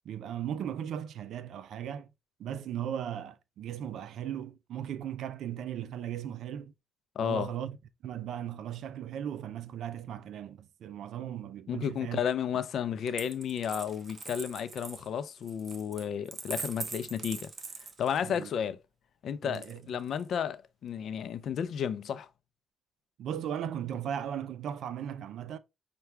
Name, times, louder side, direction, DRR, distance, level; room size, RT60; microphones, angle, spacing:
voice 1, 0.0-2.1 2.4-6.7 7.2-7.8 8.0-12.2 18.2-18.5 19.4-19.8 23.2-25.6, right 10 dB, 75° right, 0.4 m, -37 dB
voice 2, 7.2-7.5 11.7-17.5 18.0-18.8 19.2-22.3, left 8 dB, 65° left, 0.4 m, -32 dB
Coin (dropping), 13.1-18.5 19.5-20.3, right 4 dB, 40° right, 0.7 m, -42 dB
5.7 x 2.3 x 3.2 m
cardioid pair, 90°, 0 cm